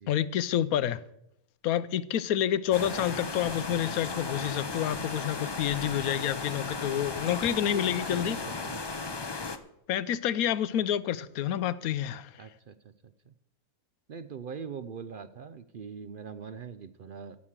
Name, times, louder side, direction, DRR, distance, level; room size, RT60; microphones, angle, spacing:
voice 1, 0.1-1.0 1.6-8.4 9.9-12.3, left 10 dB, 75° left, 1.1 m, -28 dB
sound 1, 2.7-9.6, left 3 dB, 35° left, 0.4 m, -35 dB
voice 2, 7.7-8.8 12.4-12.7 13.3-13.4 14.1-17.4, right 6 dB, 70° right, 0.5 m, -42 dB
16.0 x 6.4 x 7.3 m
omnidirectional pair, 1.6 m